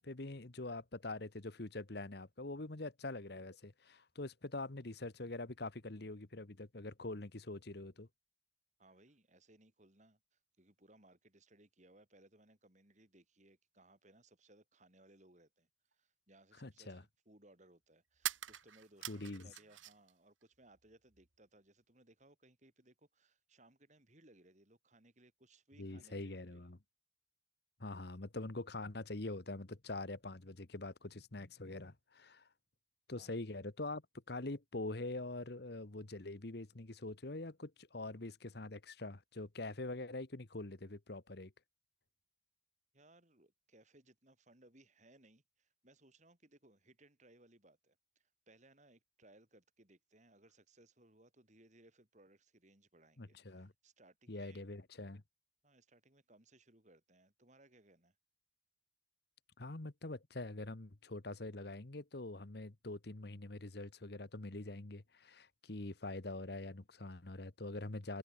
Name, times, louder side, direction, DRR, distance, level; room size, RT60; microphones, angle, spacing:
voice 1, 0.0-8.1 16.6-17.0 19.1-19.5 25.8-26.8 27.8-32.5 33.1-34.0 34.3-41.5 53.2-53.7 54.3-55.2 59.6-68.2, left 2 dB, 55° left, 1.3 m, -44 dB
voice 2, 8.8-26.7 33.2-33.3 42.9-54.6 55.6-58.2, right 1 dB, 40° right, 4.2 m, -65 dB
sound 1, 15.9-16.0 18.1-20.1 20.4-21.3, right 12 dB, 90° right, 1.9 m, -44 dB
head